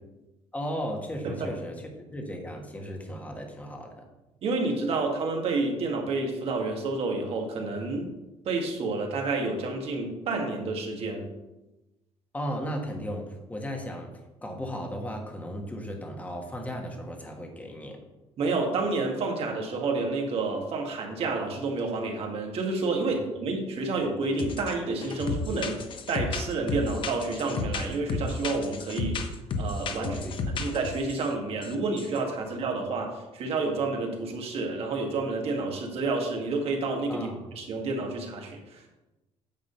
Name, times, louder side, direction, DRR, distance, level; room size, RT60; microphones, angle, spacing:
voice 1, 0.5-4.0 12.3-14.1 14.4-18.0 23.1-23.2 30.0-30.7 37.1-37.4, equal, 10° left, 2 dB, 1.5 m, -36 dB
voice 2, 4.4-8.1 8.4-11.2 18.4-25.8 26.1-30.2 30.5-37.3 37.5-38.9, right 3 dB, 55° right, 1 dB, 1.7 m, -29 dB
sound 1, 24.4-24.7 25.0-31.3 31.6-31.7 32.0-32.2, left 3 dB, 45° left, 0.8 m, -32 dB
9.1 x 3.8 x 6.7 m, 1.0 s
cardioid pair, 135°, 12 cm